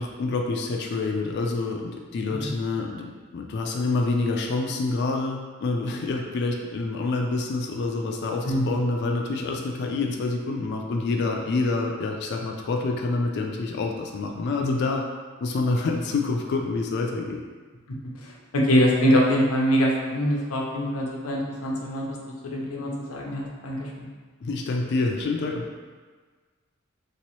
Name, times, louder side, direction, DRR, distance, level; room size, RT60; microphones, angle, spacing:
voice 1, 0.0-15.1 15.4-17.4 24.4-25.6, left 3 dB, 55° left, 2 dB, 0.3 m, -27 dB
voice 2, 18.2-22.2 22.4-24.1, equal, 85° left, -2 dB, 0.6 m, -24 dB
3.0 x 2.9 x 3.0 m, 1.5 s
head